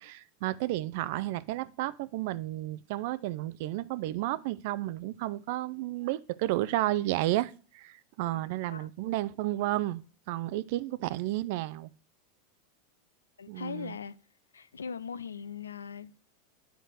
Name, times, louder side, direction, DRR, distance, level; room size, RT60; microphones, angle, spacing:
voice 1, 0.0-10.0 10.3-11.9 13.5-14.0, right 16 dB, 60° right, 0.4 m, -32 dB
voice 2, 13.4-14.2 14.5-16.2, left 6 dB, 90° left, 0.3 m, -40 dB
8.0 x 4.1 x 6.2 m
hypercardioid pair, 95°, 0 cm